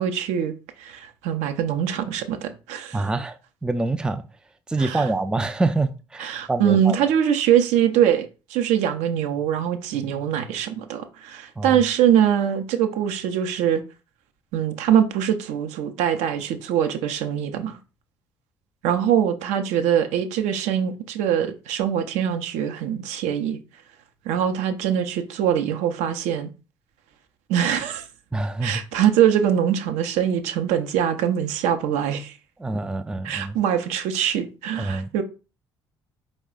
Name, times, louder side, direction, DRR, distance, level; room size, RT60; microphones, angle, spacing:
voice 1, 0.0-3.0 4.8-5.0 6.2-13.8 14.5-17.8 18.8-23.6 24.3-26.5 27.5-28.0 28.6-32.3 33.2-35.2, right 9 dB, 60° right, 0.5 m, -23 dB
voice 2, 2.9-4.2 4.7-7.1 11.6-11.8 28.3-28.8 32.6-33.6 34.8-35.2, right 2 dB, 5° right, 0.4 m, -26 dB
4.6 x 2.1 x 3.7 m
figure-of-eight pair, 50°, 13 cm